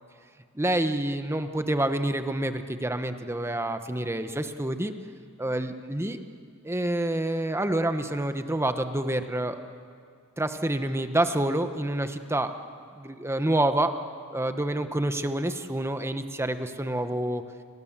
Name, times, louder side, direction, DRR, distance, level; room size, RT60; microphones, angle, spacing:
voice 1, 0.5-4.9 5.4-6.2 6.6-9.6 10.4-12.5 13.0-13.9 14.3-17.4, right 1 dB, 10° right, 8 dB, 1.1 m, -27 dB
29.5 x 23.5 x 7.5 m, 2.2 s
head